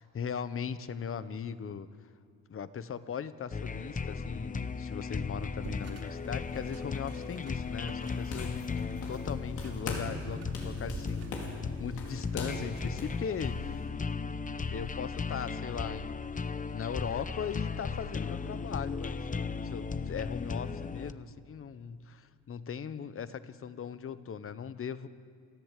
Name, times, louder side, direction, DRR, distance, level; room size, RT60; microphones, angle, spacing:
voice 1, 0.0-1.9 2.5-8.7 9.1-13.9 14.7-16.4 16.7-25.1, left 7 dB, 45° left, 13 dB, 1.1 m, -39 dB
sound 1, 3.5-21.1, left 5 dB, 25° left, 0.9 m, -36 dB
sound 2, 5.6-13.9, right 4 dB, 55° right, 3.6 m, -50 dB
sound 3, 8.0-9.3 9.6-10.2 10.5-13.2, left 3 dB, 85° left, 4.7 m, -40 dB
28.0 x 14.5 x 8.4 m, 2.3 s
cardioid pair, 90°, 30 cm